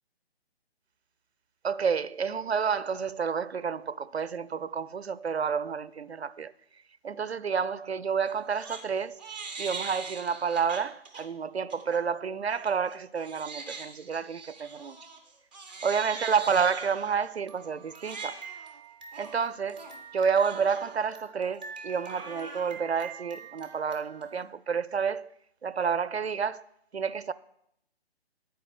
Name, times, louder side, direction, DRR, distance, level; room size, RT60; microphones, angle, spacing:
voice 1, 1.6-6.5 7.0-9.2 9.6-15.0 15.8-18.4 19.2-19.8 20.1-25.3 25.6-26.6 26.9-27.3, right 6 dB, 80° right, 0.5 m, -29 dB
Crying sobbing, 8.2-8.8 9.2-11.2 11.7-12.0 12.5-24.5, right 4 dB, 10° right, 0.5 m, -43 dB
10.5 x 4.7 x 8.0 m
figure-of-eight pair, 140°, 31 cm